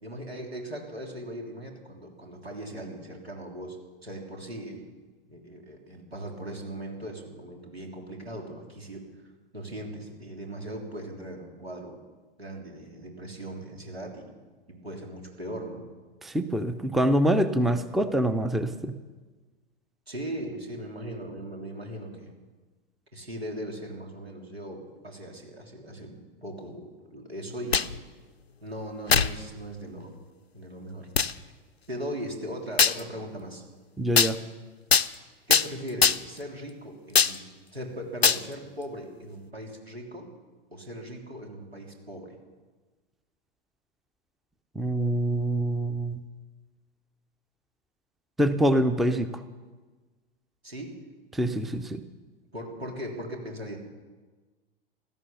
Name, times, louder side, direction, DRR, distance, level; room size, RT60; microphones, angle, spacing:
voice 1, 0.0-4.9 5.3-9.1 9.5-12.0 12.4-14.4 14.7-15.8 20.1-22.3 23.1-27.8 28.6-30.1 30.5-31.1 31.9-33.6 35.5-37.5 37.7-40.3 40.7-42.4 50.6-51.0 52.5-53.8, right 1 dB, 85° right, 1 dB, 3.3 m, -39 dB
voice 2, 16.2-19.0 34.0-34.4 44.8-46.2 48.4-49.4 51.3-52.0, right 1 dB, ahead, 12 dB, 0.5 m, -25 dB
sound 1, 27.5-28.0 29.1-29.3 30.0-30.1 31.2-31.3 32.8-33.0 34.2-34.3 34.9-35.1 35.5-35.7 36.0-36.4 37.1-37.4 38.2-38.4, left 6 dB, 90° left, 0.6 m, -21 dB
16.0 x 13.0 x 6.9 m, 1.3 s
figure-of-eight pair, 100°, 30 cm